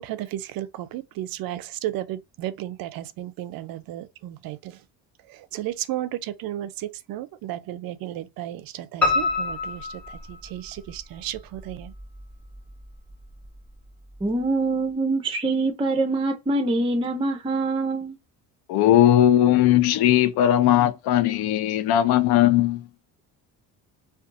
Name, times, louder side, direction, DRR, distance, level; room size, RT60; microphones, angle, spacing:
voice 1, 0.0-4.8 5.5-11.9, right 13 dB, 60° right, 0.5 m, -34 dB
Piano, 9.0-10.9 11.4-12.2 12.5-12.6 13.1-13.2 13.4-13.5, left 3 dB, 5° left, 1.0 m, -26 dB
voice 2, 14.2-18.2, right 2 dB, 15° right, 0.5 m, -24 dB
voice 3, 18.7-22.9, left 12 dB, 75° left, 0.6 m, -18 dB
2.6 x 2.3 x 2.5 m
cardioid pair, 90°, 39 cm